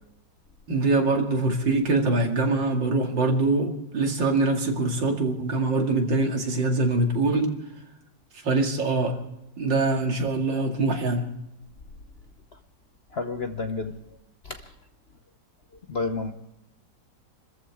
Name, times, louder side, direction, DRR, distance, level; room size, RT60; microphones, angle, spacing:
voice 1, 0.7-7.5 8.4-9.2 9.6-11.2, right 2 dB, 80° right, 2 dB, 3.0 m, -23 dB
voice 2, 13.1-14.0 14.4-14.6 15.9-16.3, left 3 dB, 50° left, 6 dB, 0.8 m, -30 dB
27.5 x 14.0 x 3.6 m, 0.87 s
omnidirectional pair, 2.0 m